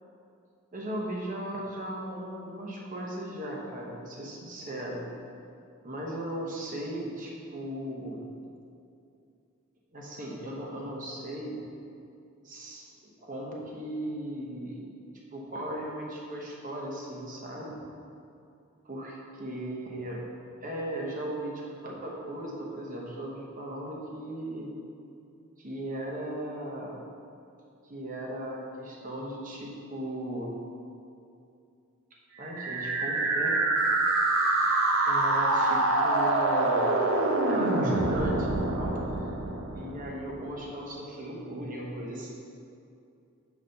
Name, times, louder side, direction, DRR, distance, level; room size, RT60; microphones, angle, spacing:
voice 1, 0.7-5.1 5.8-8.3 9.9-11.6 12.4-12.8 13.2-14.8 15.3-17.8 18.8-20.2 20.6-21.5 21.8-24.7 25.6-27.0 27.8-30.6 32.4-33.6 35.0-37.0 37.5-39.0 39.7-42.3, right 1 dB, 40° right, -2 dB, 1.0 m, -37 dB
sound 1, 32.4-40.4, right 2 dB, 70° right, 0.7 m, -26 dB
6.2 x 4.1 x 5.4 m, 2.6 s
head